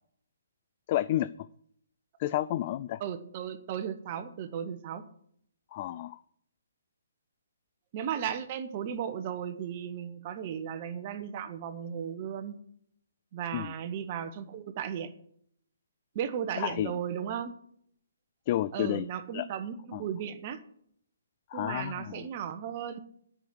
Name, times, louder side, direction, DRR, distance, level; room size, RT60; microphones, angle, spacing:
voice 1, 0.9-1.3 2.2-3.0 5.7-6.2 13.5-13.7 16.6-16.9 18.5-19.1 19.3-19.5 19.9-20.0 21.5-22.3, left 13 dB, 35° left, 15 dB, 0.3 m, -30 dB
voice 2, 3.0-5.1 7.9-12.6 13.3-15.1 16.1-17.5 18.7-20.6 21.5-23.0, right 8 dB, 35° right, 10 dB, 1.0 m, -35 dB
9.6 x 6.1 x 8.5 m, 0.67 s
figure-of-eight pair, 135°, 0 cm